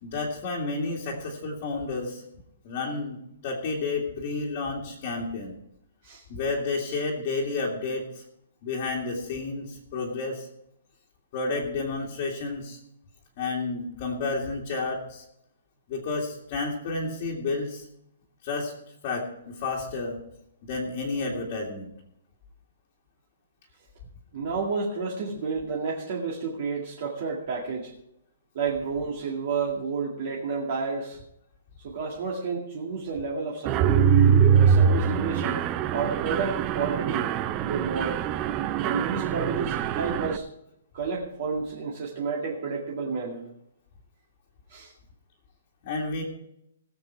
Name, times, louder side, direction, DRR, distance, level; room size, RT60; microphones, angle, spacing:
voice 1, 0.0-2.2 2.6-3.2 3.4-5.5 6.3-8.2 8.6-10.5 11.3-12.8 13.4-15.2 15.9-17.9 18.4-18.7 19.0-20.2 20.6-21.9 45.8-46.2, left 3 dB, 30° left, -3 dB, 2.1 m, -31 dB
voice 2, 24.3-27.9 28.5-31.2 31.8-34.1 34.6-35.6 35.9-37.3 37.6-38.2 38.8-40.5 40.9-43.5 44.7-44.9, right 5 dB, 40° right, -3 dB, 2.1 m, -30 dB
Mechanisms, 33.7-40.4, right 7 dB, 20° right, 0.4 m, -23 dB
19.0 x 7.6 x 4.6 m, 0.80 s
hypercardioid pair, 175°, 0 cm